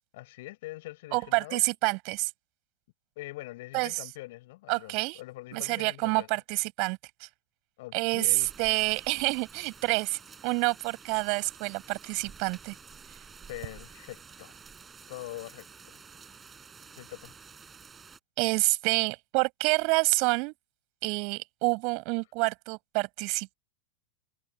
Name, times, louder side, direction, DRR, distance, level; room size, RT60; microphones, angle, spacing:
voice 1, 0.1-1.6 3.2-6.4 7.8-8.5 13.5-14.6 15.1-15.7 17.0-17.3, left 19 dB, 50° left, 5.8 m, -43 dB
voice 2, 1.1-2.3 3.7-4.1 4.7-5.2 5.5-7.3 7.9-12.7 18.4-20.5 21.0-23.5, right 32 dB, 45° right, 5.3 m, -28 dB
sound 1, 8.4-18.2, right 5 dB, 15° right, 5.7 m, -50 dB
figure-of-eight pair, 90°, 0 cm